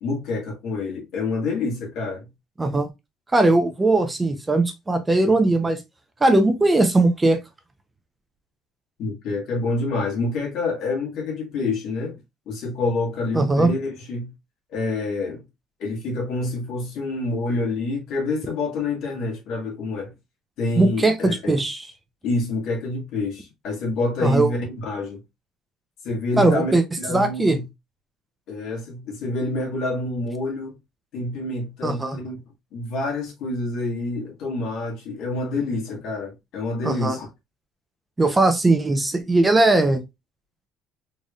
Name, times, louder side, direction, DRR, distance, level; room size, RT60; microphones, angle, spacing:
voice 1, 0.0-2.2 9.0-12.2 12.5-14.3 14.7-15.4 15.8-20.1 20.6-21.6 22.2-25.2 26.0-27.6 28.5-30.8 31.1-32.4 32.7-37.3, left 2 dB, 65° left, 1.9 m, -27 dB
voice 2, 2.6-2.9 3.3-5.8 6.2-7.4 13.3-13.7 20.8-21.9 24.2-24.5 26.4-26.8 27.1-27.6 31.8-32.2 36.8-37.2 38.2-40.0, right 2 dB, 15° right, 0.7 m, -19 dB
4.0 x 3.3 x 2.4 m
cardioid pair, 105°, 0 cm